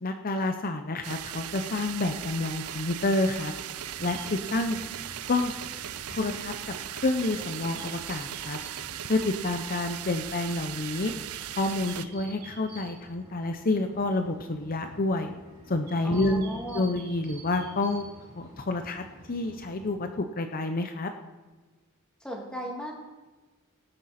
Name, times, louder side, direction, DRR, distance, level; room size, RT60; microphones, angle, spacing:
voice 1, 0.0-3.5 4.0-4.8 5.3-5.5 6.1-6.5 6.9-8.6 9.1-11.1 11.6-15.3 15.7-16.4 16.7-18.0 18.4-19.0 19.3-21.1, left 2 dB, 40° left, 6 dB, 0.7 m, -28 dB
sound 1, 1.0-12.0, right 11 dB, 85° right, 0.5 m, -38 dB
sound 2, 3.7-19.9, right 2 dB, 50° right, 4.3 m, -49 dB
voice 2, 16.0-16.9 22.2-22.9, equal, 5° left, -1 dB, 2.4 m, -36 dB
18.5 x 9.8 x 4.3 m, 1.3 s
head